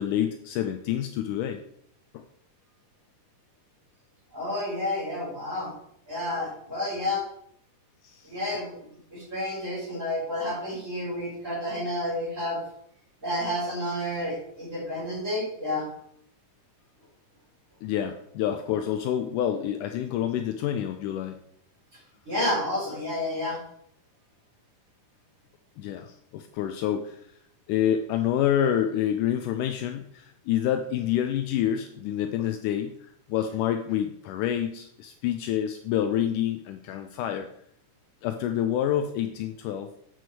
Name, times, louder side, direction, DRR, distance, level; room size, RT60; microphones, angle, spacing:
voice 1, 0.0-1.6 2.1-2.2 8.0-8.3 17.8-21.4 25.8-27.2 27.7-37.5 38.2-39.9, left 10 dB, 80° left, 7 dB, 2.0 m, -28 dB
voice 2, 4.3-5.7 6.1-7.2 8.2-8.7 9.1-12.6 13.2-15.9 22.3-23.6, left 1 dB, 20° right, -7 dB, 4.1 m, -30 dB
8.2 x 6.1 x 4.6 m, 0.70 s
omnidirectional pair, 3.9 m